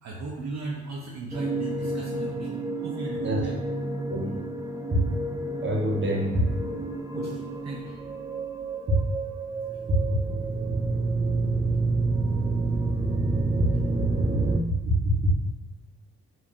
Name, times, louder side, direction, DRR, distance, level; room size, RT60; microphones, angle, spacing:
voice 1, 0.0-3.6 7.1-8.0, right 3 dB, 60° right, -3 dB, 0.7 m, -37 dB
sound 1, 1.3-14.6, right 3 dB, 15° right, 0.3 m, -29 dB
voice 2, 4.1-4.5 4.9-5.0 5.6-6.5 13.6-13.7 15.2-15.3, equal, 40° right, -2 dB, 1.1 m, -25 dB
5.1 x 2.9 x 2.6 m, 1.1 s
cardioid pair, 90°, 30 cm